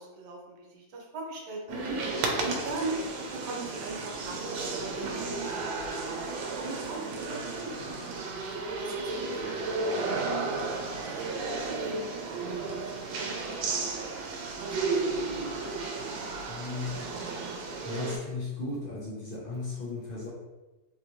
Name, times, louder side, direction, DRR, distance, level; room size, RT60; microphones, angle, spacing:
voice 1, 0.0-2.0 2.4-3.0 3.3-4.5 4.9-8.2 8.8-10.6 11.0-12.5 13.1-13.8 14.6-15.2, right 3 dB, 65° right, -1 dB, 1.3 m, -40 dB
sound 1, 1.7-18.2, right 3 dB, 85° right, 1.4 m, -33 dB
voice 2, 16.5-17.0 17.8-20.3, left 3 dB, 85° left, -7 dB, 0.4 m, -36 dB
3.8 x 3.0 x 2.7 m, 1.1 s
omnidirectional pair, 2.1 m